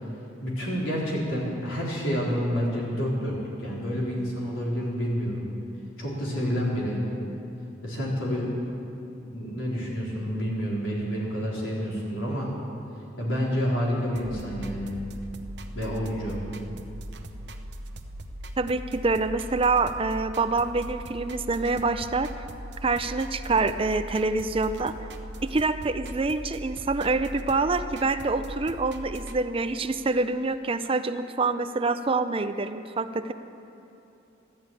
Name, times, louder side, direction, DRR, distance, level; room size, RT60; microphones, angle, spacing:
voice 1, 0.4-5.5 6.0-7.1 7.8-8.5 9.2-12.5 13.2-14.9 15.7-16.4, equal, 85° left, -5 dB, 4.1 m, -29 dB
sound 1, 14.2-29.4, right 1 dB, 60° right, 0.8 m, -40 dB
voice 2, 18.6-22.3 22.8-24.9 25.4-33.3, right 3 dB, 30° right, 10 dB, 0.5 m, -26 dB
13.0 x 12.0 x 9.0 m, 2.8 s
head